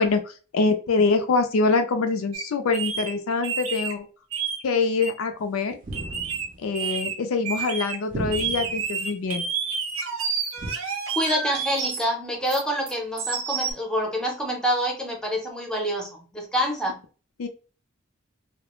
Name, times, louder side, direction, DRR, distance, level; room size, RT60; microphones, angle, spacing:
voice 1, 0.0-4.1 4.6-5.8 6.6-9.5 17.4-17.5, left 4 dB, 90° left, 7 dB, 0.4 m, -24 dB
sound 1, 2.3-2.4 2.7-3.1 3.4-3.9 4.3-4.6 5.0-5.1 5.9-6.5 6.7-7.1 7.4-8.0 8.3-12.0 12.5-13.7, right 6 dB, 85° right, 0.6 m, -29 dB
sound 2, 5.8-6.6 8.1-8.9 10.6-10.7, right 1 dB, 40° right, 0.5 m, -34 dB
voice 2, 10.8-17.0, equal, 5° left, 1 dB, 0.6 m, -27 dB
2.3 x 2.1 x 2.9 m, 0.36 s
head